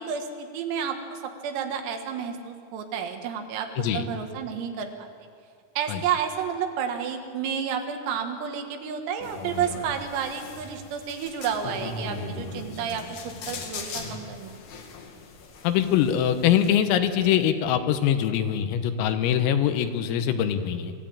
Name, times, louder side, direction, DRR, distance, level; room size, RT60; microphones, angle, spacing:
voice 1, 0.0-3.7 3.9-5.3 5.8-14.6, right 7 dB, 90° right, 4 dB, 4.5 m, -31 dB
sound 1, 9.2-16.7, left 3 dB, 60° left, 3.6 m, -39 dB
voice 2, 15.6-20.9, left 9 dB, 85° left, 8 dB, 3.9 m, -23 dB
26.0 x 15.0 x 8.8 m, 2.2 s
omnidirectional pair, 5.9 m